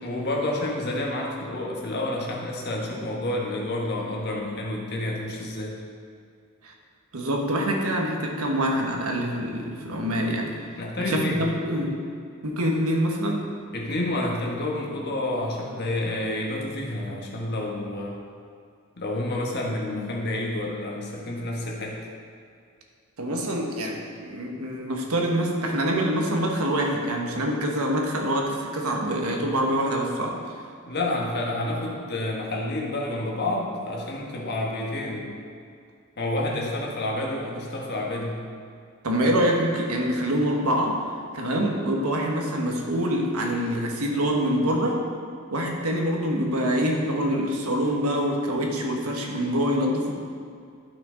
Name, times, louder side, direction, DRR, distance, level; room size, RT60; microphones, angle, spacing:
voice 1, 0.0-5.8 10.8-11.5 13.7-18.2 19.0-22.0 30.8-35.3 36.2-38.4, left 1 dB, 50° left, -2 dB, 1.5 m, -29 dB
voice 2, 7.1-10.5 11.0-12.0 12.4-13.4 23.2-30.5 39.0-41.1 41.3-45.1 45.5-50.1, equal, 85° right, 1 dB, 1.3 m, -25 dB
12.0 x 5.9 x 3.9 m, 2.3 s
head